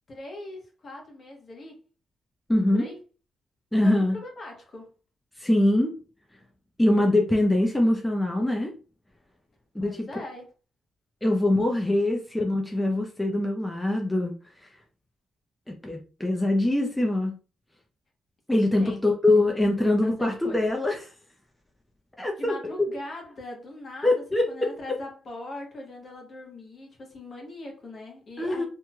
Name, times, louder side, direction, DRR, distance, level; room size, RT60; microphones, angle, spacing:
voice 1, 0.1-1.8 2.7-3.0 3.8-4.9 9.8-10.5 18.8-19.0 19.8-20.6 22.4-28.6, left 1 dB, 50° left, 1.2 m, -41 dB
voice 2, 2.5-2.9 3.7-4.2 5.4-5.9 6.8-8.7 9.7-10.1 11.2-14.3 14.6-14.7 15.7-17.3 18.5-21.1 22.2-22.9 24.0-24.7 28.4-28.6, left 1 dB, 10° left, 0.6 m, -23 dB
3.0 x 2.7 x 2.3 m
cardioid pair, 90°, 0 cm